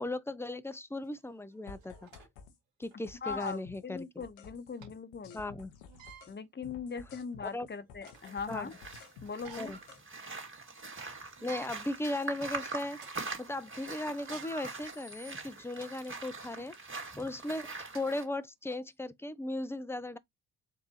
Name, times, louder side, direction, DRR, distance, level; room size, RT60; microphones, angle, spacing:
voice 1, 0.0-2.2 2.8-4.2 5.3-5.7 7.4-7.7 8.5-8.7 9.6-9.8 11.4-13.0 13.4-16.7 17.2-20.2, left 2 dB, 5° left, 0.5 m, -37 dB
sound 1, 1.1-1.2 1.8-2.3 2.9-3.0 3.2-3.5 4.8-4.9 5.8-6.3 7.0-7.1 7.6-8.3 9.3-9.9 10.3-10.4 10.8-11.0 11.4-11.7 12.3-12.5 12.9-13.1 14.1-15.9 16.5-16.7 17.6-17.7 17.9-18.0 18.7-18.8, right 5 dB, 80° right, 1.7 m, -51 dB
sound 2, 1.7-2.6 2.8-6.4 6.6-10.0 14.8-15.2 15.7-16.3 16.7-17.3, left 6 dB, 80° left, 0.8 m, -53 dB
voice 2, 3.2-5.4 6.3-8.7 9.2-9.7, left 5 dB, 25° left, 0.9 m, -40 dB
sound 3, 8.1-18.2, right 3 dB, 25° right, 2.1 m, -43 dB
4.6 x 2.6 x 2.9 m
hypercardioid pair, 45°, 46 cm